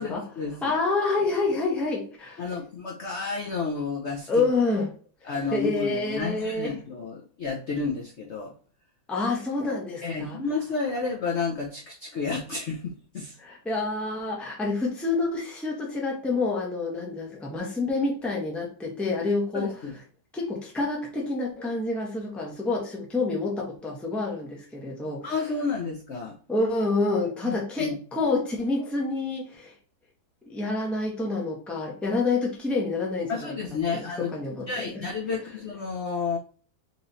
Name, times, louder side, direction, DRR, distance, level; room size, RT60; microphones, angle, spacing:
voice 1, 0.0-0.8 2.4-4.5 5.3-8.5 10.0-13.4 19.5-19.9 25.2-26.4 27.4-27.9 33.3-34.3 34.7-36.4, left 4 dB, 65° left, 0 dB, 0.7 m, -31 dB
voice 2, 0.6-2.4 4.3-4.9 5.2-6.8 9.1-10.4 13.4-19.7 20.3-25.3 26.5-29.7 30.4-33.6 33.9-35.0, left 3 dB, ahead, -2 dB, 0.7 m, -28 dB
4.1 x 3.1 x 4.0 m, 0.40 s
omnidirectional pair, 2.1 m